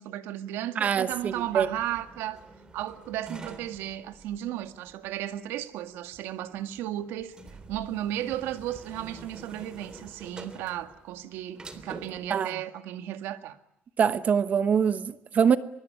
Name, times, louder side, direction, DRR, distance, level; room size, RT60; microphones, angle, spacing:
voice 1, 0.0-2.4 2.7-7.4 7.7-13.6, right 12 dB, 85° right, 1.9 m, -34 dB
voice 2, 0.8-1.7 12.3-12.5 14.0-15.6, right 7 dB, 40° right, 1.1 m, -24 dB
sound 1, 1.1-12.3, right 3 dB, 20° right, 3.3 m, -48 dB
23.5 x 23.0 x 9.8 m
cardioid pair, 130°, 4 cm